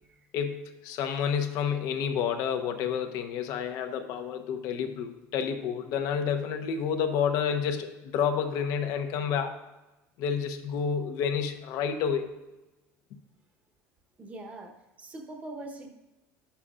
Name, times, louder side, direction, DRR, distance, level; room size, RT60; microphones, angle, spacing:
voice 1, 0.3-9.6 10.2-12.3, left 7 dB, 65° left, 5 dB, 0.8 m, -29 dB
voice 2, 14.2-14.7 15.0-15.9, right 2 dB, 20° right, 3 dB, 1.1 m, -42 dB
11.0 x 6.9 x 2.5 m, 1.0 s
supercardioid pair, 120°, 7 cm